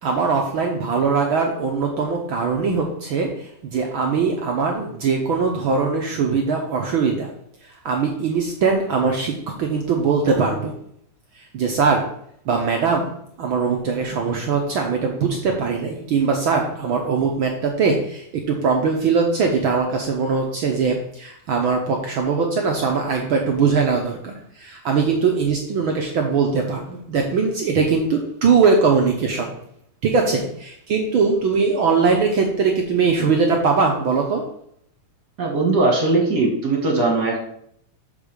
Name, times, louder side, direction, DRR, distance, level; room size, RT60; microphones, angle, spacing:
voice 1, 0.0-7.3 7.8-10.7 11.5-12.0 12.4-13.1 13.4-29.5 30.0-34.4, right 5 dB, 80° right, 2 dB, 1.1 m, -21 dB
voice 2, 35.4-37.4, right 3 dB, 40° right, 0 dB, 1.6 m, -19 dB
6.1 x 5.4 x 6.6 m, 0.69 s
omnidirectional pair, 3.5 m